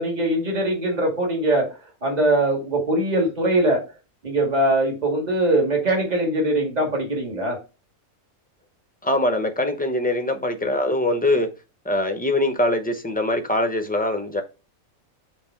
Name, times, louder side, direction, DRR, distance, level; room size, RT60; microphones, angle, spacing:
voice 1, 0.0-1.8 2.0-3.8 4.2-7.6, right 1 dB, 30° right, 2.0 m, -22 dB
voice 2, 9.0-11.5 11.8-14.4, left 1 dB, 10° left, 0.5 m, -23 dB
5.7 x 4.1 x 4.4 m
omnidirectional pair, 1.5 m